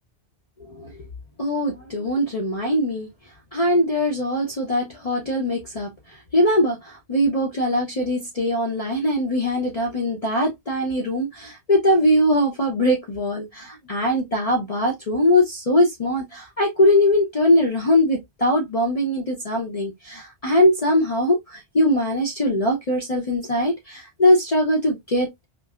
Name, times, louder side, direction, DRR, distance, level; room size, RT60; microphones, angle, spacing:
voice 1, 1.4-3.1 3.5-5.9 6.3-25.3, left 1 dB, 40° left, 0.8 m, -21 dB
5.2 x 2.1 x 2.3 m
omnidirectional pair, 1.1 m